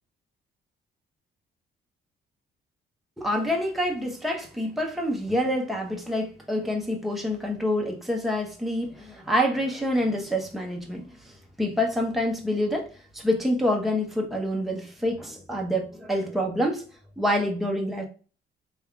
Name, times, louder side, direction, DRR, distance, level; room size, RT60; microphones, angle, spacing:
voice 1, 3.2-11.1 11.6-12.9 13.1-16.8 17.2-18.1, equal, ahead, 0 dB, 0.8 m, -27 dB
3.5 x 2.3 x 3.3 m, 0.37 s
cardioid pair, 90°, 20 cm